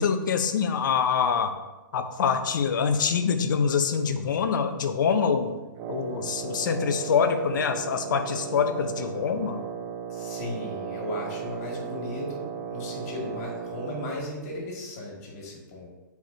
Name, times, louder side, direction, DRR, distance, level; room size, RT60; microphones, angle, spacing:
voice 1, 0.0-1.5 1.9-5.5 5.9-9.6, left 6 dB, 70° left, 8 dB, 0.7 m, -25 dB
Wind instrument woodwind instrument, 5.8-14.3, right 7 dB, 40° right, 0.6 m, -36 dB
voice 2, 10.1-15.9, left 1 dB, 50° left, -1 dB, 2.2 m, -36 dB
9.2 x 4.7 x 2.8 m, 1.1 s
hypercardioid pair, 130°, 11 cm